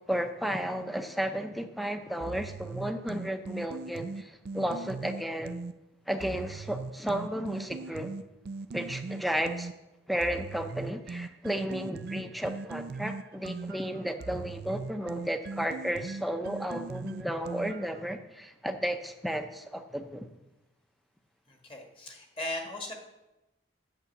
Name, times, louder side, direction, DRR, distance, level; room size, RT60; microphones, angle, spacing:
voice 1, 0.1-5.6 6.1-8.1 8.7-9.7 10.1-20.3, equal, ahead, 7 dB, 0.6 m, -33 dB
sound 1, 2.2-5.7 6.2-9.7 10.2-18.0, right 3 dB, 50° right, 0.3 m, -39 dB
voice 2, 21.5-22.9, left 1 dB, 25° left, 2 dB, 1.6 m, -38 dB
8.6 x 6.8 x 8.1 m, 1.0 s
head